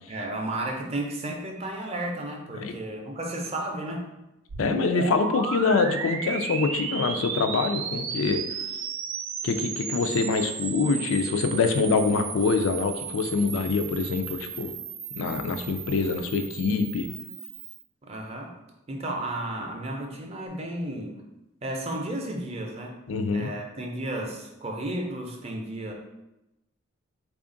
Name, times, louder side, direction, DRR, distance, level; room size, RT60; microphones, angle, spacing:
voice 1, 0.1-4.1 18.0-18.6 18.9-21.2 21.6-22.9 23.3-25.9, right 1 dB, 30° right, 1 dB, 0.5 m, -33 dB
sound 1, 4.5-17.8, right 6 dB, 90° right, 0.4 m, -35 dB
voice 2, 4.6-8.4 9.4-14.7 15.2-17.1 23.1-23.5, left 4 dB, 80° left, 7 dB, 0.4 m, -25 dB
3.5 x 2.4 x 3.8 m, 0.93 s
head